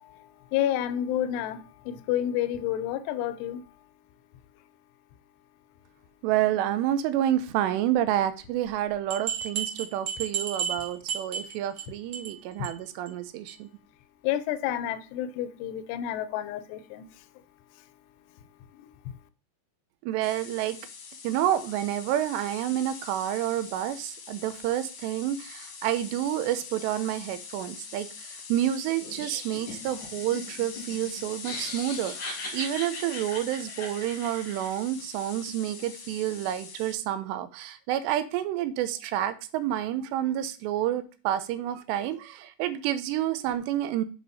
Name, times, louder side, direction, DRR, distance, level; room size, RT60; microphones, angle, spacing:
voice 1, 0.5-3.6 14.2-17.1, left 11 dB, 80° left, 11 dB, 2.5 m, -29 dB
voice 2, 6.2-13.7 20.1-20.8 21.2-44.0, right 12 dB, 85° right, 12 dB, 2.5 m, -29 dB
sound 1, 9.1-11.8 12.1-12.4 12.6-12.7 13.1-13.2 13.5-13.6, right 7 dB, 60° right, 2.0 m, -32 dB
sound 2, 20.2-36.9, left 5 dB, 65° left, 1.8 m, -43 dB
Laughter, 29.0-34.8, left 2 dB, 45° left, 1.5 m, -40 dB
8.0 x 5.6 x 4.1 m, 0.36 s
omnidirectional pair, 5.5 m